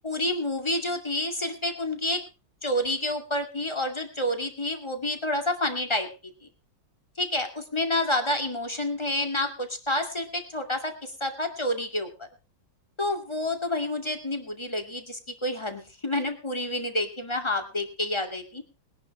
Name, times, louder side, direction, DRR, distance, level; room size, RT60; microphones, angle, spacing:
voice 1, 0.0-2.2 2.6-6.1 7.2-12.3 13.0-18.6, left 1 dB, 15° left, 5 dB, 2.2 m, -29 dB
21.5 x 11.0 x 3.2 m, 0.32 s
omnidirectional pair, 2.1 m